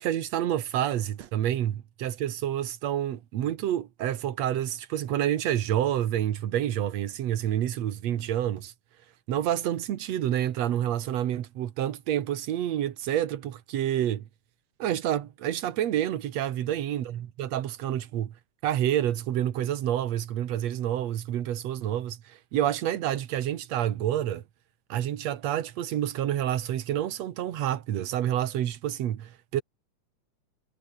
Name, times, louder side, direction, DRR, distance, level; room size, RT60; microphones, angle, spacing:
voice 1, 0.0-8.7 9.3-14.2 14.8-18.3 18.6-24.4 24.9-29.6, right 11 dB, 60° right, 2.3 m, -28 dB
omnidirectional pair, 3.7 m